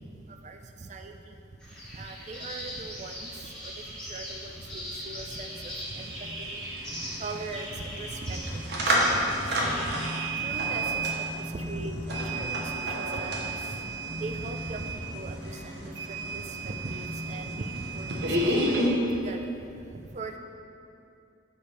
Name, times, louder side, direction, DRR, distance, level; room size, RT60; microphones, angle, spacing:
voice 1, 0.4-1.3 1.9-3.7 4.1-6.6 7.0-10.0 10.3-13.5 14.2-19.7 19.9-20.4, right 2 dB, 40° right, 5 dB, 0.4 m, -40 dB
sound 1, 1.6-10.2, equal, 5° left, 1.7 m, -40 dB
sound 2, 2.7-15.8, equal, 50° left, 1.3 m, -50 dB
sound 3, 5.1-5.2 5.4-18.9, right 1 dB, 60° right, 1.0 m, -31 dB
6.8 x 5.1 x 4.3 m, 2.6 s
head